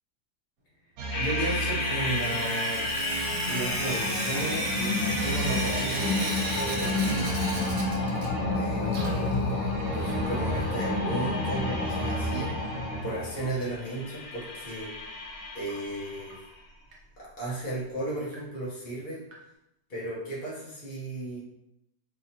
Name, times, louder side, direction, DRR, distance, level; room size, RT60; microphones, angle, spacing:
sound 1, 1.0-13.5, right 2 dB, 80° right, 1.2 m, -36 dB
sound 2, 1.1-16.4, left 2 dB, 90° left, 1.4 m, -30 dB
voice 1, 1.2-2.9 3.5-7.8 8.5-12.5 13.0-14.9 15.5-16.4 17.2-19.2 19.9-21.4, right 1 dB, 35° left, -8 dB, 0.9 m, -35 dB
Sink (filling or washing) / Drip, 1.8-8.6 8.8-10.8 11.9-12.0 12.3-12.4 12.7-12.8 15.7-15.8 16.3-16.4 16.9-17.0 17.6-17.7 18.3-18.4 19.3-19.4, right 2 dB, 60° right, 1.1 m, -37 dB
3.7 x 3.0 x 2.8 m, 0.86 s
omnidirectional pair, 1.9 m